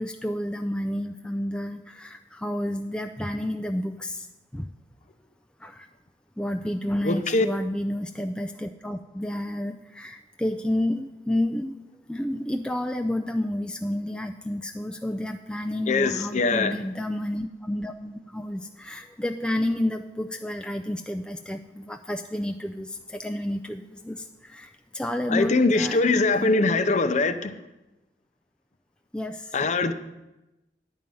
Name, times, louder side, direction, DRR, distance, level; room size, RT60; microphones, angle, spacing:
voice 1, 0.0-4.3 4.5-4.7 5.6-5.9 6.4-11.7 12.1-26.8 29.1-29.5, left 1 dB, 5° left, 6 dB, 0.3 m, -30 dB
voice 2, 7.0-7.5 15.9-16.8 25.3-27.5 29.5-29.9, left 3 dB, 40° left, 10 dB, 0.6 m, -22 dB
10.0 x 5.4 x 7.6 m, 0.99 s
head